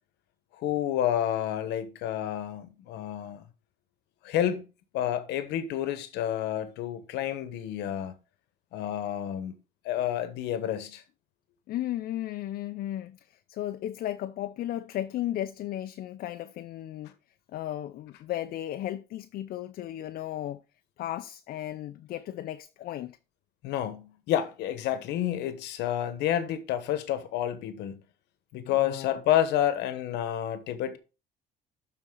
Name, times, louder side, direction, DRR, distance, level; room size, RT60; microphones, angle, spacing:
voice 1, 0.6-3.4 4.2-4.7 4.9-8.1 8.7-9.5 9.8-11.0 23.6-28.0 28.5-31.0, left 11 dB, 85° left, 1.2 m, -29 dB
voice 2, 11.7-17.1 17.5-20.6 21.0-23.2 28.5-29.2, left 13 dB, 65° left, 0.5 m, -35 dB
12.0 x 4.2 x 3.8 m
cardioid pair, 110°, 17 cm